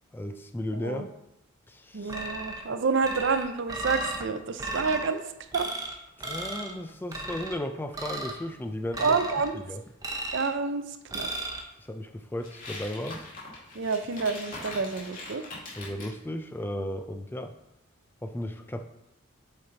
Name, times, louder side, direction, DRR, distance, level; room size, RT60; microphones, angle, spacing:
voice 1, 0.1-1.1 1.7-2.1 6.2-9.2 9.5-9.8 11.8-13.2 15.8-17.5 18.2-18.8, left 1 dB, 10° left, 6 dB, 0.3 m, -35 dB
voice 2, 1.9-5.2 5.5-5.7 9.0-9.6 10.3-10.8 11.1-11.3 13.7-15.4, right 4 dB, 55° right, 9 dB, 0.5 m, -28 dB
sound 1, 2.1-2.7 3.0-4.2 4.6-5.1 5.5-5.9 6.2-6.7 7.1-7.6 7.9-8.4 8.9-9.5 10.0-10.6 11.1-11.6, right 1 dB, 15° right, 0.8 m, -35 dB
sound 2, 12.4-16.1, left 2 dB, 40° left, 2.0 m, -42 dB
8.1 x 4.1 x 4.0 m, 0.86 s
head